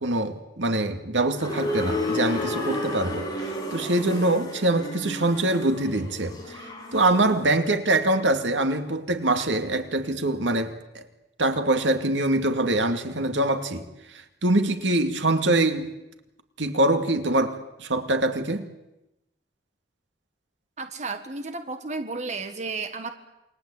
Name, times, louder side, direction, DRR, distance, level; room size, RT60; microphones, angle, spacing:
voice 1, 0.0-6.6 6.9-11.0 11.4-13.9 14.1-15.9 16.6-18.7, right 2 dB, 85° right, 7 dB, 2.4 m, -24 dB
sound 1, 1.4-7.3, left 1 dB, 20° left, 6.3 m, -32 dB
voice 2, 20.8-23.1, right 3 dB, 40° right, 7 dB, 1.7 m, -33 dB
28.5 x 22.0 x 8.6 m, 0.92 s
head